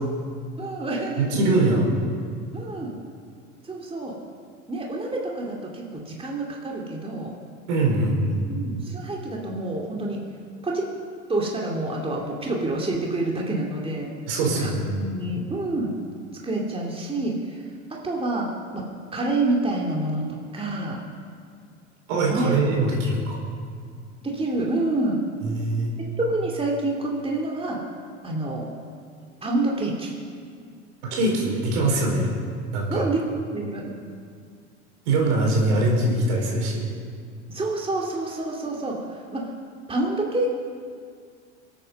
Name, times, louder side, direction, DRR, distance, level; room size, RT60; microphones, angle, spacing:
voice 1, 0.6-1.4 2.5-2.9 3.7-4.2 4.7-7.3 8.5-10.2 10.6-10.9 11.3-14.1 14.5-14.7 15.0-15.9 16.4-17.6 17.9-18.9 19.1-21.0 22.3-22.5 24.2-25.2 26.0-27.8 28.2-28.6 29.4-30.1 32.9-33.2 33.5-33.9 37.5-39.5 39.9-40.5, right 2 dB, 15° right, -2 dB, 2.6 m, -27 dB
voice 2, 1.2-1.9 7.7-8.5 14.3-15.0 22.1-23.4 25.4-26.0 31.0-32.3 32.7-33.1 35.0-36.8, right 2 dB, 70° right, -2 dB, 4.8 m, -22 dB
25.5 x 9.0 x 5.4 m, 2.1 s
hypercardioid pair, 80°, 36 cm